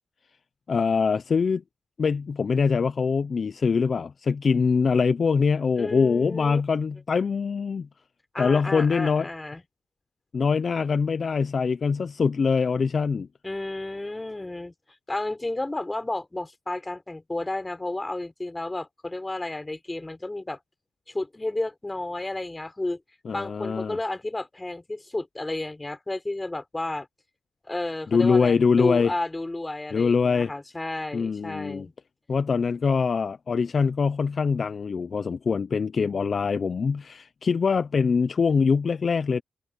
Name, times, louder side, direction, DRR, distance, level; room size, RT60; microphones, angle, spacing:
voice 1, 0.7-1.6 2.0-7.9 8.4-9.3 10.3-13.3 23.3-24.0 28.1-29.1 29.9-30.5 31.1-31.9 32.3-39.4, left 5 dB, 50° left, 0.8 m, -23 dB
voice 2, 5.8-6.6 8.3-9.6 13.4-14.7 15.1-20.6 21.1-23.0 23.3-27.1 27.7-31.9, left 2 dB, 20° left, 3.9 m, -32 dB
supercardioid pair, 60°, 0 cm